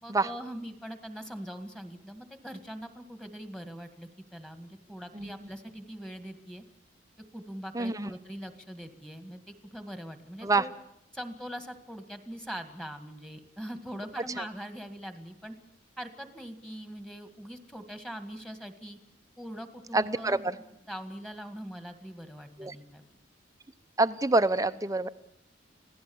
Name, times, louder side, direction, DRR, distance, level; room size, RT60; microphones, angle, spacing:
voice 1, 0.0-6.6 7.3-10.7 11.1-15.6 16.0-19.0 19.4-20.5 20.9-23.2, equal, 5° left, 7 dB, 1.8 m, -42 dB
voice 2, 7.7-8.1 10.4-10.6 19.9-20.6 22.6-22.7 24.0-25.1, right 2 dB, 20° right, 12 dB, 0.8 m, -26 dB
26.0 x 17.0 x 7.1 m, 0.78 s
head